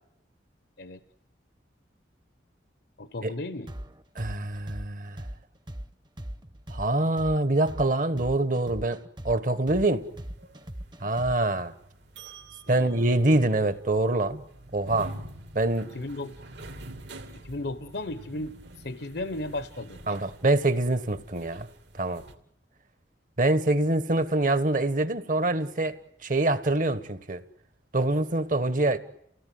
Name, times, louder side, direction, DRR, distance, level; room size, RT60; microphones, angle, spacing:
voice 1, 3.0-3.7 12.7-13.1 15.9-16.3 17.4-20.2, left 2 dB, 65° left, 1.1 m, -35 dB
sound 1, 3.7-11.6, equal, 25° right, 1.0 m, -39 dB
voice 2, 4.1-5.2 6.7-9.0 9.2-10.0 11.0-11.7 12.7-14.4 14.7-15.1 15.5-15.9 20.1-21.7 22.0-22.2 23.4-26.0 26.2-27.4 27.9-29.0, right 2 dB, 45° right, 1.3 m, -25 dB
sound 2, 9.8-22.3, right 1 dB, 75° right, 2.9 m, -46 dB
29.5 x 17.5 x 9.5 m
head